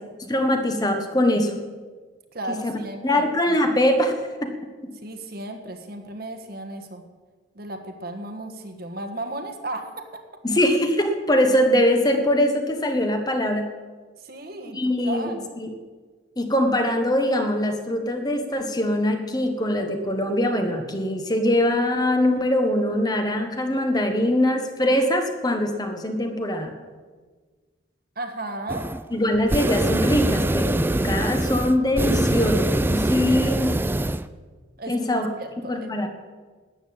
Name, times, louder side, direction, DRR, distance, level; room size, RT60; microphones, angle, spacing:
voice 1, 0.2-1.6 2.5-2.8 3.0-4.1 4.4-4.5 4.8-4.9 10.4-13.7 14.7-15.3 15.6-15.7 16.4-26.7 29.1-33.7 34.9-35.3 35.7-36.1, left 1 dB, 20° left, 5 dB, 1.2 m, -22 dB
voice 2, 2.3-3.6 5.0-7.1 7.5-10.2 14.2-15.5 28.1-28.9 34.8-36.1, right 1 dB, 50° right, 6 dB, 1.5 m, -35 dB
sound 1, 28.7-29.0 29.3-34.3, right 1 dB, 10° right, 0.3 m, -23 dB
13.0 x 9.1 x 8.7 m, 1.4 s
head